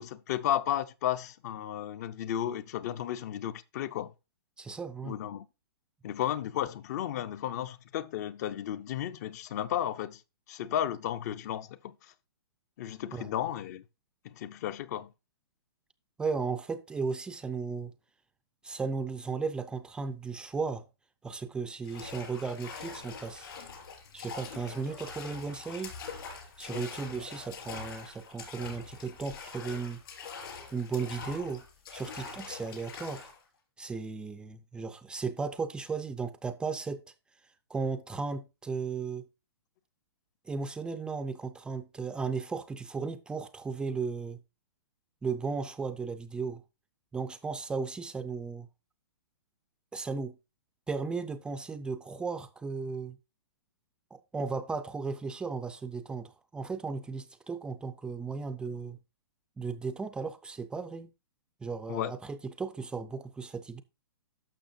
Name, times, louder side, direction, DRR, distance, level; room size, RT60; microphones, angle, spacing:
voice 1, 0.0-4.1 5.0-5.5 6.0-10.2 10.5-12.1 12.8-13.8 14.2-15.1 26.7-26.9 61.9-62.1, left 11 dB, 40° left, 0.6 m, -33 dB
voice 2, 4.6-5.2 13.1-13.3 16.2-17.9 18.6-20.8 21.2-23.5 24.1-25.9 26.6-30.0 30.7-31.6 31.9-33.3 33.8-37.0 37.7-39.3 40.5-44.4 45.2-46.6 47.1-48.7 49.9-50.4 50.9-53.2 54.1-59.0 59.6-61.1 61.6-63.8, right 4 dB, 5° right, 0.4 m, -35 dB
sound 1, 21.8-33.4, left 5 dB, 65° left, 4.1 m, -44 dB
12.0 x 6.5 x 2.6 m
hypercardioid pair, 150°, 13 cm